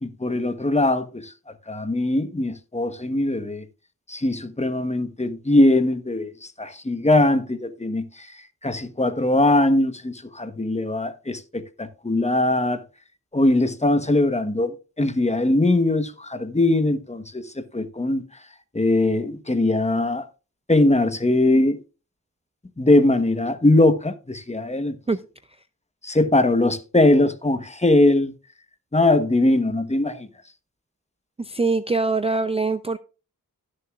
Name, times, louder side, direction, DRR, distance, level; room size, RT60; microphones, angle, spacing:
voice 1, 0.0-1.3 1.7-3.7 4.1-12.8 13.3-18.2 18.7-20.3 20.7-21.8 22.8-25.0 26.0-28.3 28.9-30.3, left 2 dB, 20° left, 1.1 m, -21 dB
voice 2, 31.4-33.0, right 3 dB, 15° right, 0.5 m, -23 dB
17.0 x 6.6 x 2.4 m
cardioid pair, 55°, 35 cm